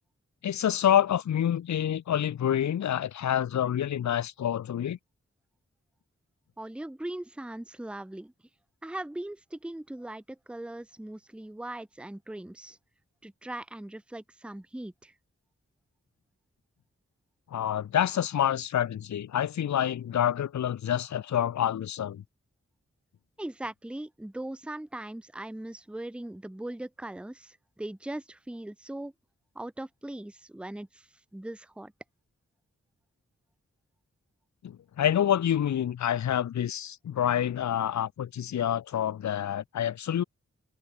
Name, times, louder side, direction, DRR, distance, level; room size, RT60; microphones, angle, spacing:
voice 1, 0.4-5.0 17.5-22.2 34.6-40.2, left 10 dB, 75° left, 0.5 m, -27 dB
voice 2, 6.6-8.3 8.8-12.8 13.2-15.1 23.4-29.1 29.6-31.0 31.3-31.9, right 1 dB, 5° right, 0.7 m, -39 dB
wide cardioid pair, 80°, 29 cm